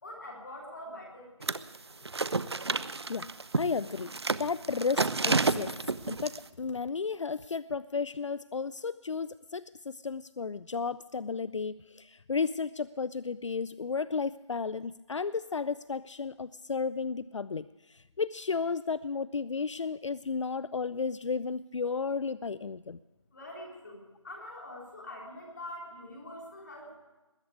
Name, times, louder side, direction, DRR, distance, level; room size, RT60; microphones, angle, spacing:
voice 1, 0.0-1.7 23.3-27.0, left 1 dB, 35° left, -2 dB, 3.5 m, -44 dB
sound 1, 1.4-1.8 2.0-6.4, right 3 dB, 55° right, 0.6 m, -30 dB
voice 2, 3.5-4.1 4.4-5.7 6.1-23.0, left 5 dB, 70° left, 17 dB, 0.4 m, -33 dB
20.5 x 8.4 x 8.4 m, 1.2 s
figure-of-eight pair, 175°, 16 cm